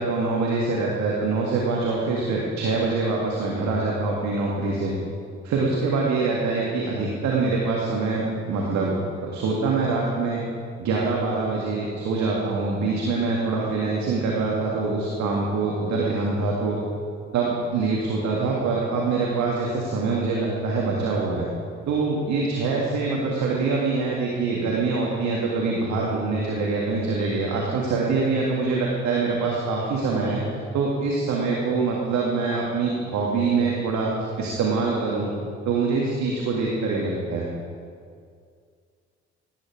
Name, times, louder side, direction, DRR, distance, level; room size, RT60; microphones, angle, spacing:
voice 1, 0.0-4.9 5.4-10.4 10.8-16.8 17.3-21.5 21.9-30.4 30.7-34.1 34.4-35.3 35.7-37.5, right 3 dB, 55° right, -2 dB, 2.0 m, -24 dB
17.0 x 9.7 x 4.9 m, 2.2 s
figure-of-eight pair, 45°, 34 cm